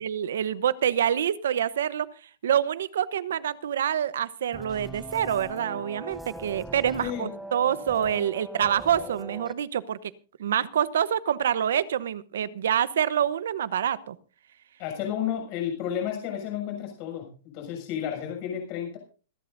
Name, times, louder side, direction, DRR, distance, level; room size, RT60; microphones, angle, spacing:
voice 1, 0.0-2.1 2.4-10.1 10.4-14.2, right 9 dB, 85° right, 16 dB, 0.9 m, -26 dB
sound 1, 4.5-9.5, right 1 dB, ahead, 0.6 m, -40 dB
voice 2, 7.0-7.3 8.1-8.2 14.8-19.0, left 9 dB, 35° left, 2 dB, 6.9 m, -32 dB
26.5 x 11.5 x 2.7 m, 0.36 s
supercardioid pair, 170°, 0 cm